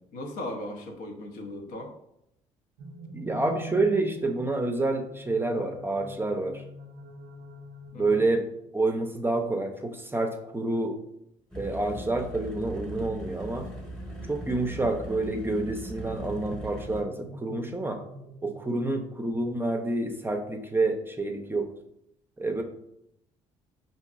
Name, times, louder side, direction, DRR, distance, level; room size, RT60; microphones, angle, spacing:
voice 1, 0.0-1.9 7.9-8.3 18.7-19.0, left 1 dB, 70° left, 3 dB, 0.7 m, -38 dB
sound 1, 2.8-8.4 11.6-19.4, right 2 dB, 80° right, 0.5 m, -45 dB
voice 2, 3.1-6.6 8.0-8.4 8.7-11.0 11.6-13.7 14.3-18.0 18.4-21.7 22.4-22.6, right 2 dB, 15° right, 4 dB, 0.5 m, -28 dB
sound 2, 11.5-17.0, right 1 dB, ahead, 0.9 m, -39 dB
4.5 x 2.7 x 2.4 m, 0.78 s
hypercardioid pair, 60°, 15 cm